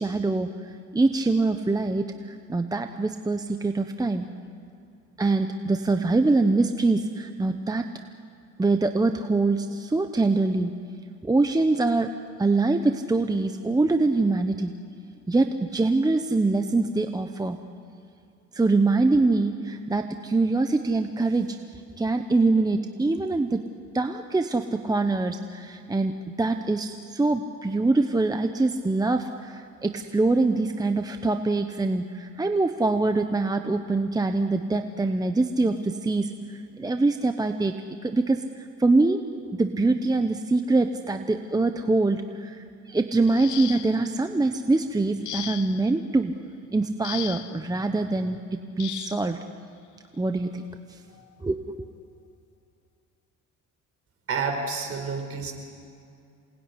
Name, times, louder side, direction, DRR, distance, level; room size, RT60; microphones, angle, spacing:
voice 1, 0.0-4.3 5.2-7.8 8.6-10.7 11.2-14.7 15.3-17.6 18.5-23.6 23.9-37.7 38.0-39.2 39.5-46.3 46.7-48.4 48.8-49.4 50.2-51.0 51.4-51.9, right 3 dB, 10° right, 7 dB, 1.0 m, -24 dB
sound 1, 43.2-44.1 45.2-45.9 47.0-47.6 48.8-49.3 50.5-50.6 51.1-51.3, left 13 dB, 65° left, 0.9 m, -37 dB
voice 2, 54.3-55.5, right 4 dB, 45° right, 4 dB, 4.8 m, -29 dB
27.5 x 20.0 x 9.9 m, 2.5 s
cardioid pair, 120°, 32 cm